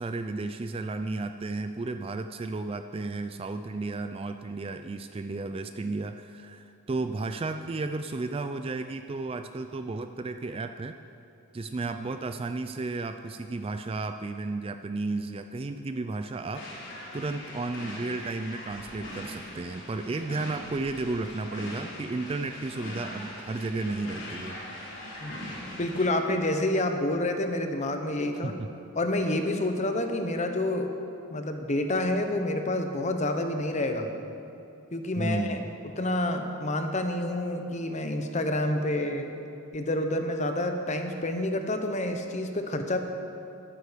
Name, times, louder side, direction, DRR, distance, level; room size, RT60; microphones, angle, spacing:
voice 1, 0.0-10.9 11.5-16.9 17.1-24.6 28.4-28.7 35.2-35.7, right 3 dB, 25° right, 8 dB, 0.3 m, -33 dB
sound 1, 16.5-26.1, left 1 dB, 55° left, 3.5 m, -41 dB
voice 2, 25.8-28.5 29.0-30.9 31.3-34.1 34.9-35.6 36.0-39.3 39.7-43.0, left 1 dB, 30° left, 6 dB, 0.9 m, -28 dB
13.0 x 12.5 x 5.1 m, 2.7 s
head